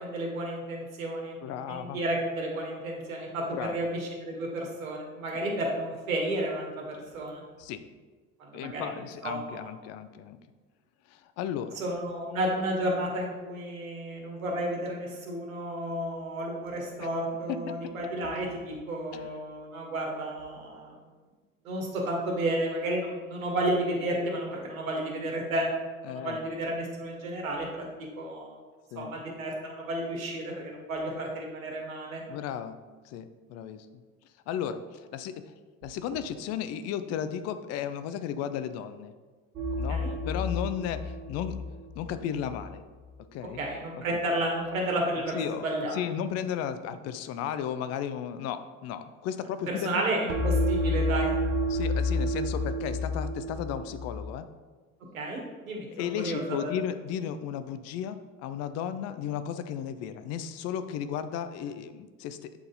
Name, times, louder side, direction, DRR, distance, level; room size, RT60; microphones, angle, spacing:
voice 1, 0.0-1.4 1.6-7.4 8.4-8.9 9.2-9.7 11.7-21.0 21.6-25.7 26.1-27.8 28.2-28.6 28.9-32.2 39.9-40.1 43.6-45.4 45.6-46.0 49.7-51.3 55.1-56.7, right 1 dB, 75° right, -1 dB, 1.7 m, -32 dB
voice 2, 1.4-2.0 3.5-3.8 7.6-7.8 8.5-10.4 11.1-11.8 17.0-17.1 17.7-17.9 19.1-19.3 26.0-26.4 28.9-29.2 32.3-32.8 33.0-33.9 34.5-35.3 35.8-39.1 39.8-41.6 42.0-42.8 43.3-43.6 44.1-44.2 45.3-50.0 51.7-54.5 55.9-62.5, left 9 dB, 40° left, 11 dB, 0.5 m, -34 dB
sound 1, 39.6-42.6 50.3-54.3, left 1 dB, 30° right, 1.1 m, -30 dB
8.2 x 4.1 x 3.9 m, 1.4 s
figure-of-eight pair, 70°, 42 cm